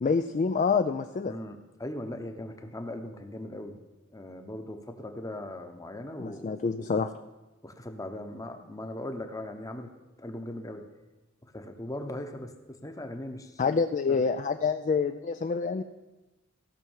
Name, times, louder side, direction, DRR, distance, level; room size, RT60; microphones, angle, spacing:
voice 1, 0.0-1.3 6.2-7.1 13.6-15.8, left 5 dB, 40° left, 8 dB, 0.3 m, -27 dB
voice 2, 1.2-3.8 4.1-7.0 7.6-9.9 10.2-10.9 11.4-13.8 14.1-14.3, left 1 dB, 15° left, 6 dB, 0.9 m, -39 dB
16.0 x 5.8 x 7.2 m, 1.1 s
head